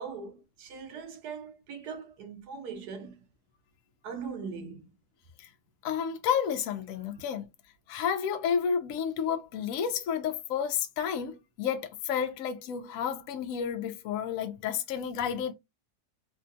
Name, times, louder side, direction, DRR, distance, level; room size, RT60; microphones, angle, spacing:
voice 1, 0.0-3.2 4.0-4.9, right 5 dB, 85° right, 1.3 m, -40 dB
voice 2, 5.8-7.5 7.9-15.5, left 7 dB, 70° left, 0.9 m, -31 dB
3.7 x 2.2 x 2.6 m
omnidirectional pair, 1.6 m